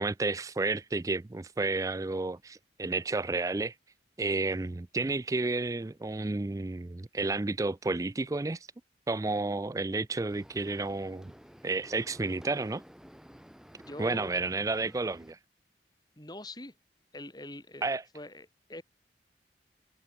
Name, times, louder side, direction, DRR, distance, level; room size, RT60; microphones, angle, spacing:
voice 1, 0.0-3.7 4.2-8.6 9.1-11.3 11.6-12.8 14.0-15.4 17.8-18.0, right 3 dB, 20° right, 0.3 m, -31 dB
sound 1, 10.3-15.3, equal, 5° right, 1.3 m, -53 dB
voice 2, 13.8-14.3 16.2-16.7 17.1-18.8, left 1 dB, 20° left, 3.2 m, -44 dB
head